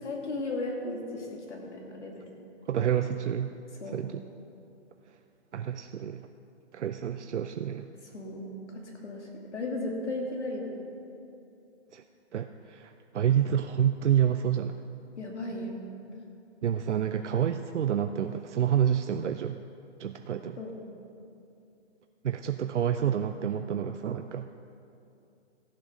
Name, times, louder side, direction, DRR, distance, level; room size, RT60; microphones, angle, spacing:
voice 1, 0.0-2.2 3.8-4.0 8.1-8.5 8.8-10.7 15.2-15.7 20.6-20.7, left 2 dB, 85° left, -1 dB, 2.6 m, -35 dB
voice 2, 2.7-3.5 3.9-4.2 5.5-6.3 6.7-7.9 11.9-12.0 12.3-14.8 16.6-19.6 20.0-20.6 22.2-24.5, right 9 dB, 85° right, 7 dB, 0.6 m, -28 dB
15.0 x 7.4 x 5.1 m, 2.7 s
hypercardioid pair, 155°, 34 cm